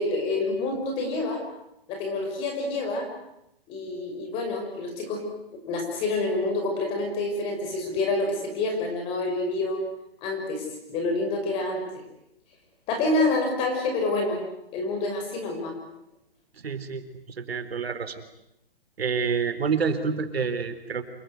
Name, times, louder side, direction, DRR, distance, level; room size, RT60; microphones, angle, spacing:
voice 1, 0.0-1.4 1.9-3.1 3.7-5.2 5.7-9.8 10.2-11.8 12.9-14.4 14.7-15.7, left 2 dB, 20° left, 3 dB, 5.9 m, -27 dB
voice 2, 16.6-18.2 19.0-21.0, right 5 dB, 85° right, 9 dB, 4.1 m, -28 dB
28.5 x 21.5 x 9.6 m, 0.82 s
hypercardioid pair, 170°, 30 cm